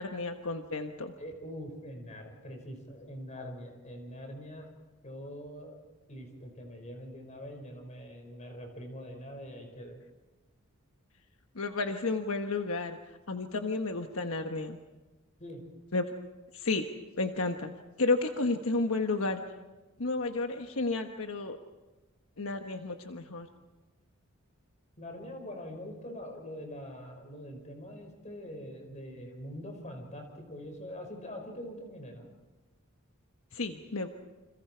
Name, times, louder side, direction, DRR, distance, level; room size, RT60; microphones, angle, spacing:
voice 1, 0.0-1.1 11.5-13.0 13.3-14.8 15.9-16.0 16.5-16.9 17.2-17.7 18.0-19.4 20.0-21.6 22.4-23.5 33.5-34.1, left 3 dB, 75° left, 5 dB, 1.3 m, -31 dB
voice 2, 1.2-4.7 5.0-5.7 6.1-10.0 15.4-15.6 25.0-32.3, equal, 35° left, 3 dB, 5.3 m, -43 dB
29.5 x 27.0 x 4.6 m, 1.2 s
head